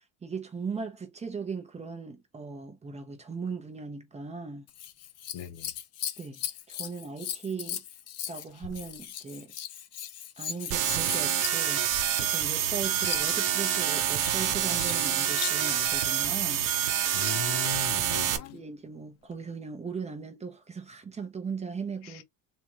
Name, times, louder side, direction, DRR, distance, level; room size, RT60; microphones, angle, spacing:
voice 1, 0.0-4.6 6.2-7.8 8.3-9.5 10.4-11.9 12.2-16.7 18.5-22.2, right 5 dB, 15° right, 0.8 m, -38 dB
Scissors, 4.7-16.0 18.0-18.6 19.3-19.4, left 10 dB, 40° left, 0.6 m, -39 dB
voice 2, 5.3-5.7 17.1-18.6 22.0-22.2, left 9 dB, 75° left, 0.9 m, -38 dB
sound 1, 10.7-18.4, right 10 dB, 55° right, 0.9 m, -27 dB
3.7 x 2.8 x 3.0 m
cardioid pair, 175°, 40 cm